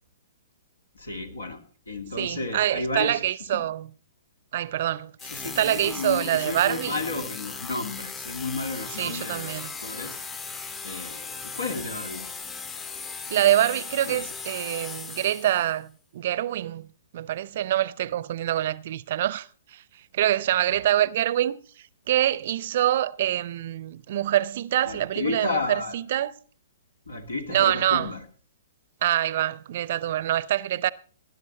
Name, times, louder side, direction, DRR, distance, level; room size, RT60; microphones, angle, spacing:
voice 1, 0.9-1.6 1.9-3.6 5.2-10.2 10.8-12.3 14.0-14.2 24.8-26.0 27.1-28.3, left 3 dB, 80° left, 2.5 m, -33 dB
voice 2, 2.2-3.9 4.5-5.1 5.6-7.0 9.0-9.7 13.3-16.9 17.1-19.8 20.1-21.6 22.1-26.4 27.5-28.1 29.0-30.9, right 12 dB, 55° right, 0.6 m, -25 dB
sound 1, 5.2-15.7, left 5 dB, 15° left, 0.8 m, -37 dB
18.5 x 10.5 x 4.1 m
figure-of-eight pair, 120°, 0 cm